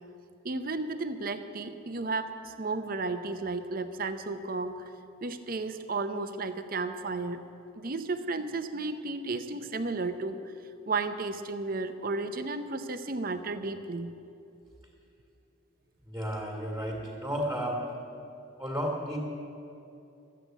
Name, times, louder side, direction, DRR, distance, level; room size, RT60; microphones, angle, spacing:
voice 1, 0.4-4.9 5.2-7.4 7.7-10.4 10.9-14.1, right 3 dB, 45° right, 9 dB, 0.7 m, -33 dB
voice 2, 16.1-17.8 18.6-19.2, equal, 10° right, -2 dB, 1.9 m, -32 dB
13.0 x 8.1 x 9.1 m, 2.7 s
head